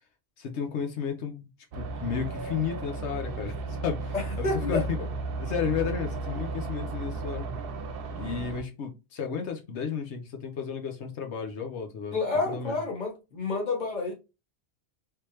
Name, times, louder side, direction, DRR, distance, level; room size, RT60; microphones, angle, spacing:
voice 1, 0.4-1.5 1.7-3.5 3.8-4.8 5.4-7.5 8.2-12.2 12.5-12.8, left 7 dB, 90° left, 1.1 m, -33 dB
sound 1, 1.7-8.6, right 3 dB, 60° right, 0.8 m, -34 dB
voice 2, 4.1-4.8 12.1-14.1, left 3 dB, 45° left, 1.3 m, -29 dB
3.5 x 3.1 x 2.9 m
omnidirectional pair, 1.1 m